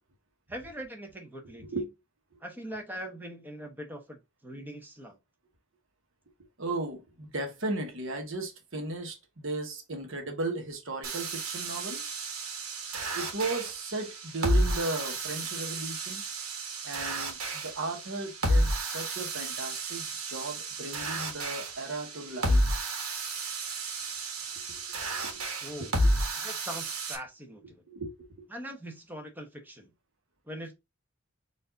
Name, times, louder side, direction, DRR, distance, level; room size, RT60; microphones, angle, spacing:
voice 1, 0.5-1.8 2.4-5.2 25.6-26.0 26.4-27.8 28.5-29.9 30.5-30.7, equal, 10° right, 0.8 m, -42 dB
voice 2, 6.6-12.0 13.1-16.2 16.8-22.6 25.2-25.4 25.8-25.9 27.6-28.4, right 2 dB, 60° right, 1.1 m, -36 dB
sound 1, 11.0-27.2, right 1 dB, 80° right, 1.2 m, -31 dB
4.6 x 2.6 x 3.8 m
head